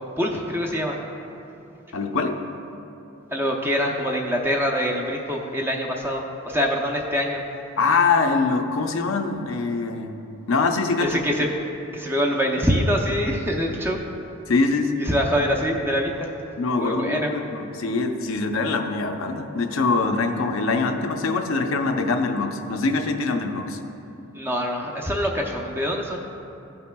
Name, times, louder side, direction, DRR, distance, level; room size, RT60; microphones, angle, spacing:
voice 1, 0.2-1.0 3.3-7.4 11.0-11.5 11.9-14.0 15.0-16.3 16.8-17.3 24.3-26.2, equal, 10° right, 0 dB, 0.6 m, -24 dB
voice 2, 1.9-2.4 7.8-10.2 10.5-11.2 14.5-14.9 16.6-23.8, left 3 dB, 75° left, 5 dB, 0.6 m, -23 dB
16.5 x 5.6 x 2.2 m, 2.9 s
head